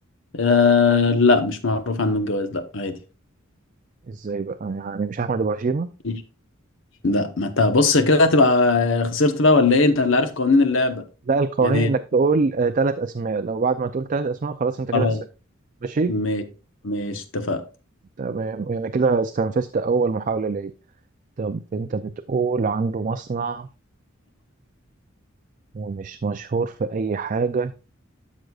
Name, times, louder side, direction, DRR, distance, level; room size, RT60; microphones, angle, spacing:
voice 1, 0.3-2.9 6.0-6.1 7.0-11.0 11.6-11.9 14.9-15.2 16.1-16.4 16.8-17.6, left 3 dB, 65° left, 1.1 m, -19 dB
voice 2, 4.1-5.9 11.3-15.2 15.8-16.1 18.2-20.7 21.4-23.7 25.7-27.7, right 4 dB, 40° right, 0.4 m, -24 dB
12.5 x 6.5 x 2.4 m
head